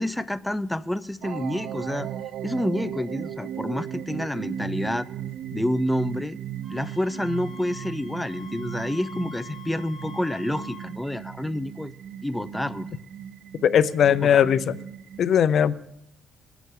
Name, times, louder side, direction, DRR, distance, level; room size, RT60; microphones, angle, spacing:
voice 1, 0.0-2.1 2.4-5.1 5.5-6.4 6.7-11.9 12.2-13.0 14.2-14.5, left 1 dB, 5° left, 13 dB, 0.6 m, -28 dB
sound 1, 1.2-15.2, right 10 dB, 75° right, 0.4 m, -37 dB
Wind instrument woodwind instrument, 6.6-10.9, left 5 dB, 40° right, 4.2 m, -45 dB
voice 2, 13.6-14.8 15.2-15.7, left 8 dB, 65° left, 14 dB, 0.6 m, -19 dB
20.5 x 8.2 x 3.8 m, 0.78 s
cardioid pair, 90°, 0 cm